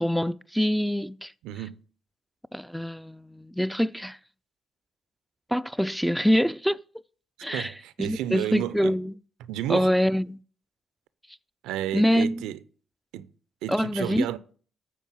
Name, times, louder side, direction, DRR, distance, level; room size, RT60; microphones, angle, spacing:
voice 1, 0.0-1.3 2.5-4.2 5.5-6.8 7.4-7.7 8.0-9.1 9.7-10.4 11.9-12.4 13.7-14.3, equal, ahead, 0.3 m, -25 dB
voice 2, 1.4-1.8 7.5-8.9 9.5-9.9 11.6-12.6 13.1-13.3 13.6-14.4, right 12 dB, 80° right, 0.4 m, -31 dB
9.2 x 4.2 x 6.0 m
hypercardioid pair, 50°, 0 cm